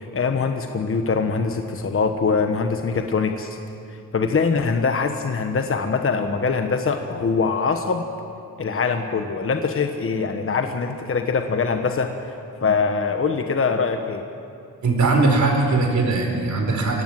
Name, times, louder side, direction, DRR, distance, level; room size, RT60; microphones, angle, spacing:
voice 1, 0.0-3.6 4.1-8.0 8.6-12.1 12.6-14.2, left 5 dB, 40° left, 6 dB, 1.3 m, -23 dB
voice 2, 14.8-17.0, right 3 dB, 55° right, 2 dB, 4.6 m, -20 dB
25.5 x 18.0 x 7.6 m, 2.5 s
wide cardioid pair, 115°, 34 cm